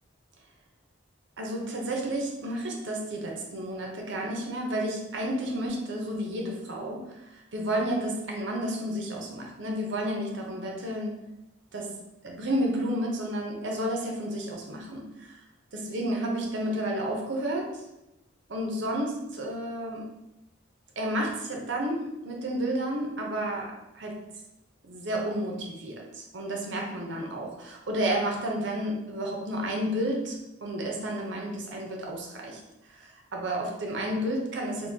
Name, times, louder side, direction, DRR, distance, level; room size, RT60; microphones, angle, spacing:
voice 1, 1.4-11.2 11.7-12.0 12.2-15.4 15.7-17.8 18.5-20.1 21.0-24.2 24.8-32.6 32.9-34.9, right 1 dB, 65° right, 0 dB, 0.6 m, -31 dB
3.7 x 2.6 x 2.7 m, 0.91 s
head